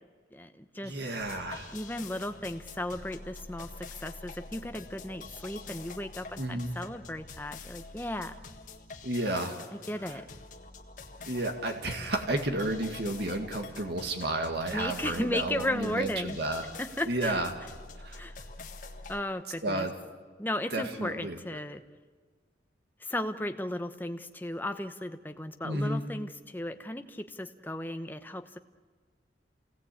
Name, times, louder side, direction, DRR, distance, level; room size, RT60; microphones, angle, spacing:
voice 1, 0.3-1.0 1.7-8.3 9.7-10.2 14.7-16.4 16.8-17.5 18.2-18.3 19.1-19.9 20.4-21.8 23.0-28.6, left 1 dB, 10° left, 8 dB, 0.9 m, -35 dB
voice 2, 0.8-1.7 6.4-6.7 9.0-9.6 10.0-10.2 11.3-16.7 17.1-17.5 18.0-18.2 19.6-19.9 20.7-21.4 25.6-26.0, right 1 dB, 60° right, 4 dB, 2.1 m, -32 dB
sound 1, 1.2-19.2, left 3 dB, 45° left, 1.7 m, -46 dB
28.0 x 18.0 x 8.6 m, 1.5 s
head